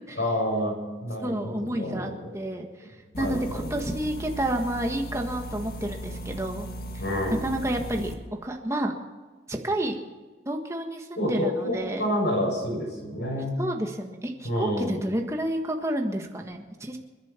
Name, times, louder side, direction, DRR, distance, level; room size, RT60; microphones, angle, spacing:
voice 1, 0.2-0.8 1.0-2.3 3.2-3.8 7.0-7.4 11.2-13.6 14.4-15.0, equal, 75° left, 0 dB, 7.1 m, -28 dB
voice 2, 1.2-2.9 3.2-6.7 7.4-8.1 8.4-8.9 9.5-10.0 10.4-12.0 13.6-17.0, right 1 dB, 15° right, 3 dB, 1.6 m, -30 dB
sound 1, 3.1-8.1, equal, 55° left, 1.6 m, -37 dB
29.0 x 10.5 x 4.4 m, 1.3 s
head